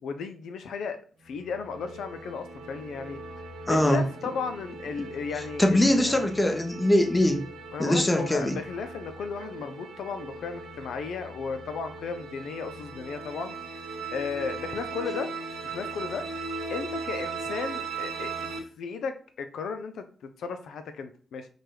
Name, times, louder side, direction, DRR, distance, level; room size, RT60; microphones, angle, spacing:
voice 1, 0.0-1.0 1.2-3.2 3.7-6.3 7.7-13.6 14.1-15.3 15.6-16.3 16.7-18.3 18.8-20.0 20.4-21.5, left 5 dB, 85° left, 8 dB, 0.4 m, -34 dB
sound 1, 1.2-18.6, right 4 dB, 85° right, 0.7 m, -39 dB
voice 2, 3.7-4.0 5.6-7.4 7.8-8.6, left 1 dB, 15° left, 4 dB, 0.7 m, -22 dB
4.7 x 2.3 x 2.9 m, 0.42 s
cardioid pair, 65°, 0 cm